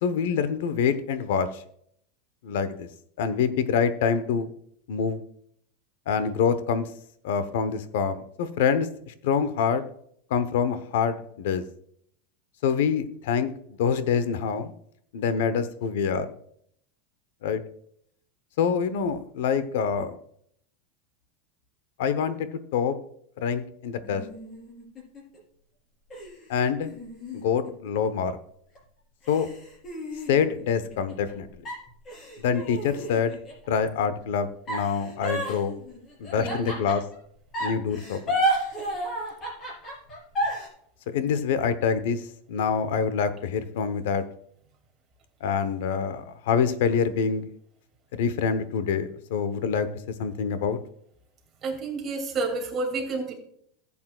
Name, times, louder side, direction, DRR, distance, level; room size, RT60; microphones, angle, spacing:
voice 1, 0.0-1.6 2.4-2.9 3.2-4.5 4.9-5.2 6.1-6.9 7.2-9.8 10.3-11.6 12.6-13.5 13.8-14.7 15.1-16.3 17.4-17.6 18.6-20.1 22.0-23.0 23.4-24.2 26.5-26.9 27.3-28.4 29.3-29.5 30.3-31.5 32.4-33.4 33.7-35.8 36.2-37.0 37.6-38.4 41.1-42.2 42.5-44.2 45.4-47.5 48.1-49.9 50.2-50.8, left 6 dB, 65° left, 12 dB, 0.9 m, -26 dB
sound 1, 24.0-25.4 26.1-28.3 28.8-28.9 29.2-31.3 31.7-33.7 34.7-37.2 37.5-40.7, right 1 dB, 20° left, 3.8 m, -32 dB
voice 2, 36.4-36.8 51.6-53.3, right 3 dB, 20° right, 1 dB, 2.3 m, -30 dB
15.0 x 8.5 x 2.3 m, 0.67 s
supercardioid pair, 170°, 0 cm